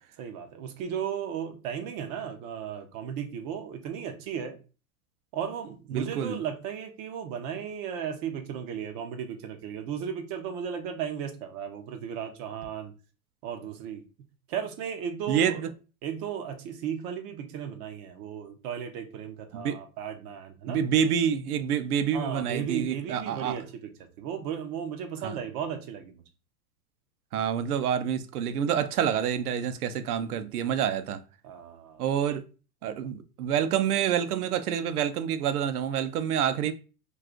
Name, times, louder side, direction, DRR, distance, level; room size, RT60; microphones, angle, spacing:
voice 1, 0.2-4.6 5.3-12.9 13.4-14.0 14.5-15.6 16.0-20.8 22.1-23.9 24.2-26.2 31.4-32.0, right 8 dB, 30° right, 0.4 m, -35 dB
voice 2, 5.9-6.4 15.3-15.7 19.5-19.8 20.7-23.6 25.2-25.3 27.3-31.2 32.0-32.4 32.8-36.7, right 8 dB, 85° right, 0.6 m, -27 dB
2.4 x 2.4 x 3.6 m
hypercardioid pair, 120°, 44 cm